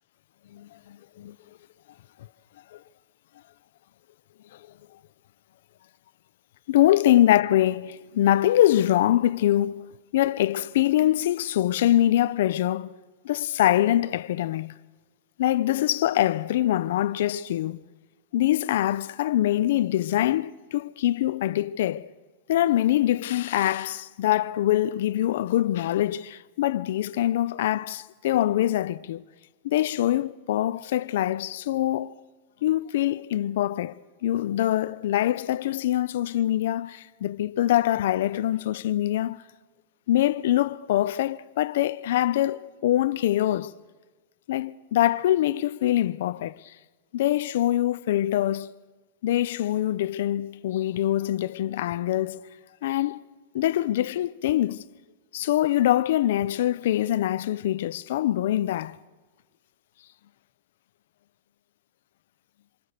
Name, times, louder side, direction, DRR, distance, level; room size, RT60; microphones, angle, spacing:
voice 1, 0.5-1.3 6.7-9.9 10.1-12.9 13.2-14.7 15.4-17.8 18.3-22.1 22.5-29.2 29.6-32.2 32.6-33.9 34.2-39.4 40.1-43.7 44.5-46.6 47.1-48.7 49.2-52.4 52.8-53.2 53.5-54.8 55.3-59.0, left 13 dB, 70° left, 0.8 m, -24 dB
27.5 x 26.5 x 6.8 m
supercardioid pair, 155°, 0 cm